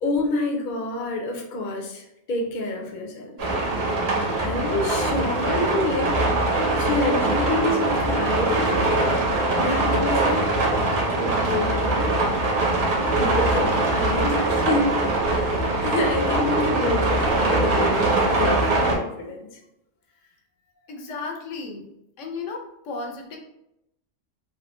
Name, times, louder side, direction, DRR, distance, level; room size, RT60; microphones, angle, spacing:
voice 1, 0.0-3.4 4.4-6.2 6.6-9.1 9.6-10.5 11.1-12.2 13.2-19.4, left 2 dB, 50° left, 0 dB, 0.6 m, -28 dB
sound 1, 3.4-18.9, right 2 dB, 60° right, 1.1 m, -22 dB
voice 2, 20.8-21.9 22.2-23.4, left 4 dB, 75° left, 2 dB, 1.0 m, -34 dB
3.1 x 2.5 x 3.0 m, 0.84 s
omnidirectional pair, 1.3 m